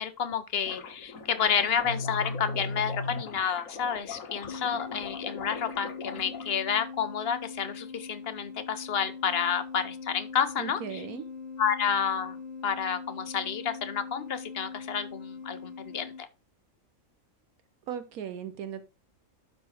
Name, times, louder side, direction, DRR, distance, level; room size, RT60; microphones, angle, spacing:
voice 1, 0.0-11.1 11.6-12.4 12.6-16.3, left 7 dB, 50° left, 0.9 m, -30 dB
sound 1, 0.6-6.5, left 5 dB, 65° left, 1.5 m, -42 dB
sound 2, 1.8-3.3 4.4-16.2, left 3 dB, 20° left, 3.1 m, -40 dB
voice 2, 10.6-11.2 17.9-18.8, right 9 dB, 80° right, 1.1 m, -37 dB
12.0 x 4.2 x 4.7 m
omnidirectional pair, 1.5 m